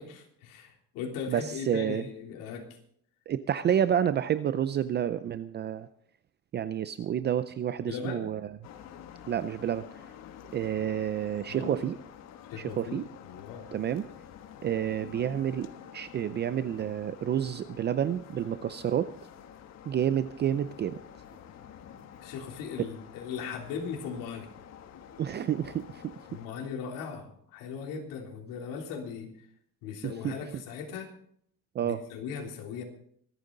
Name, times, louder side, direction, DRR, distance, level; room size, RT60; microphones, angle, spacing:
voice 1, 0.0-2.7 7.9-8.3 10.8-10.9 11.5-11.8 12.5-13.7 22.2-24.5 26.3-29.3 29.8-31.1 31.8-32.8, left 6 dB, 75° left, 1 dB, 3.5 m, -38 dB
voice 2, 1.3-2.0 3.3-5.9 6.5-8.6 9.3-9.8 10.4-12.0 12.6-13.1 13.7-14.1 14.6-15.7 15.9-19.1 19.9-21.0 25.2-26.4 30.0-30.6 31.7-32.0, right 10 dB, 30° right, 12 dB, 0.5 m, -29 dB
sound 1, 8.6-26.5, left 9 dB, 55° left, 1.4 m, -49 dB
24.5 x 9.3 x 3.9 m, 0.66 s
cardioid pair, 140°, 33 cm